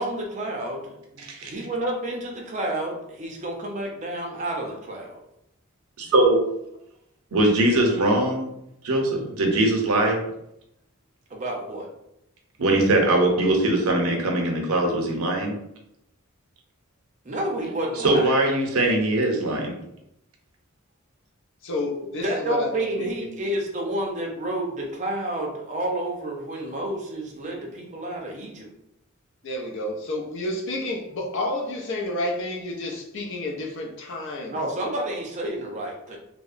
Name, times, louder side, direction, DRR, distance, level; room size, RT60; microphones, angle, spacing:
voice 1, 0.0-5.1 11.3-11.9 17.2-18.3 22.2-28.7 34.5-36.2, right 1 dB, 35° right, 0 dB, 0.5 m, -30 dB
voice 2, 1.2-1.5 6.1-6.4 7.3-8.5 8.8-10.2 12.6-15.5 18.0-19.7, right 1 dB, 90° right, 2 dB, 0.6 m, -21 dB
voice 3, 21.6-23.3 29.4-34.6, left 1 dB, 60° left, 2 dB, 0.4 m, -30 dB
2.7 x 2.0 x 2.4 m, 0.81 s
head